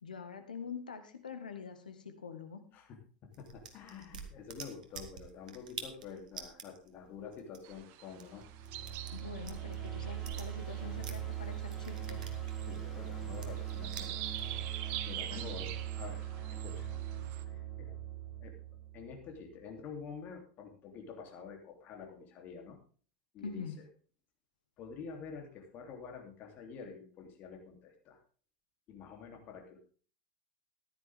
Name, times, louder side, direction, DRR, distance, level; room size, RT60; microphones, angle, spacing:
voice 1, 0.0-2.6 9.1-12.2 15.3-15.4 23.4-23.8, left 5 dB, 80° left, 8 dB, 1.6 m, -45 dB
sound 1, 3.3-11.3 11.6-14.5, right 7 dB, 70° right, 1.7 m, -48 dB
voice 2, 3.4-8.4 12.7-14.3 15.1-16.9 17.5-17.9 18.4-18.5 18.9-22.8 23.3-23.6 24.8-28.2 28.9-29.8, left 6 dB, 40° left, 3 dB, 3.2 m, -48 dB
sound 2, 7.6-17.4, right 13 dB, 50° right, 1.0 m, -46 dB
sound 3, 8.4-19.4, right 10 dB, 5° right, 4.9 m, -40 dB
14.5 x 10.5 x 3.6 m, 0.41 s
figure-of-eight pair, 80°, 4 cm